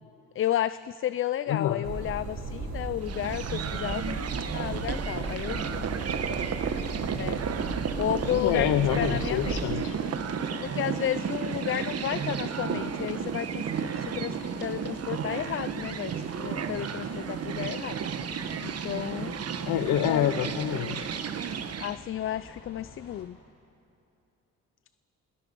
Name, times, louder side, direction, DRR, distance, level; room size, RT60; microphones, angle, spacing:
voice 1, 0.4-4.2 4.5-5.8 7.1-7.4 8.0-9.7 10.6-13.6 13.9-18.0 18.6-19.4 20.0-20.3 21.8-23.4, left 11 dB, 45° left, 16 dB, 0.4 m, -32 dB
voice 2, 1.5-1.8 8.3-10.0 19.7-21.1, left 11 dB, 80° left, 9 dB, 0.8 m, -27 dB
sound 1, 1.8-9.7, right 2 dB, 75° right, 5.5 m, -36 dB
sound 2, 3.0-22.0, right 7 dB, 55° right, 1.2 m, -33 dB
sound 3, 8.3-23.2, left 3 dB, 65° left, 3.7 m, -50 dB
28.0 x 19.5 x 5.4 m, 2.7 s
cardioid pair, 90°, 30 cm